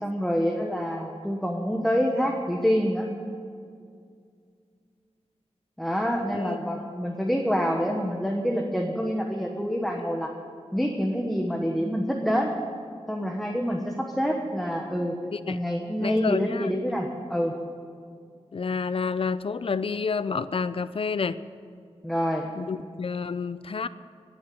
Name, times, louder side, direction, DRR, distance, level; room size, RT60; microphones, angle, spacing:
voice 1, 0.0-3.1 5.8-10.3 10.7-12.5 13.1-15.2 15.5-17.5 22.0-22.5, equal, ahead, 1 dB, 1.2 m, -27 dB
voice 2, 16.0-16.8 18.5-21.4 22.6-23.9, left 5 dB, 55° left, 15 dB, 0.5 m, -29 dB
18.0 x 7.3 x 9.3 m, 2.2 s
wide cardioid pair, 105°, 11 cm